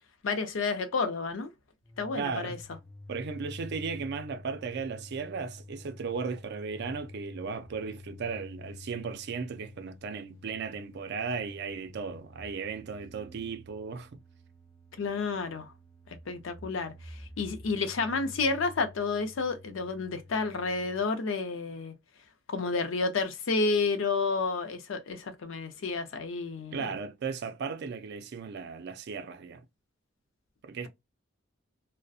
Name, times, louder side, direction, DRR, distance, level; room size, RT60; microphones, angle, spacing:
voice 1, 0.2-1.5 2.0-2.6 15.0-15.7 16.3-21.9 22.5-26.9, left 4 dB, 85° left, 0.5 m, -30 dB
sound 1, 1.8-21.0, left 1 dB, 10° left, 0.3 m, -49 dB
voice 2, 2.1-2.6 3.1-14.1 26.7-29.6 30.6-30.9, right 5 dB, 60° right, 0.4 m, -36 dB
2.6 x 2.1 x 2.3 m
head